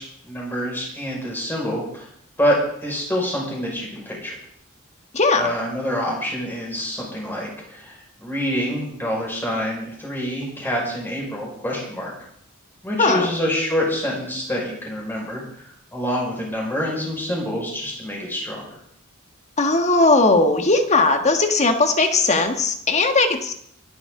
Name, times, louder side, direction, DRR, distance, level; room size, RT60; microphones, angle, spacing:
voice 1, 0.0-2.1 2.4-2.6 2.8-4.3 5.4-12.1 12.8-15.6 15.9-18.7, equal, 10° left, -3 dB, 5.4 m, -26 dB
voice 2, 5.1-5.5 13.0-13.3 19.6-23.5, left 3 dB, 35° left, 6 dB, 1.5 m, -18 dB
24.0 x 11.5 x 3.8 m, 0.68 s
head